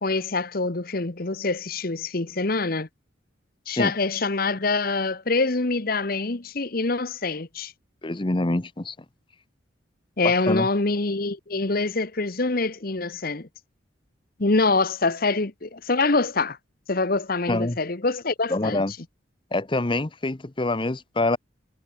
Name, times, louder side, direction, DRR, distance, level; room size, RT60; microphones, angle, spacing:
voice 1, 0.0-2.9 3.7-7.7 10.2-13.5 14.4-16.6 16.9-18.8, left 3 dB, 50° left, 1.2 m, -25 dB
voice 2, 8.0-9.0 10.2-10.7 17.5-17.8 18.5-18.9 19.5-21.4, left 2 dB, 25° left, 0.8 m, -25 dB
head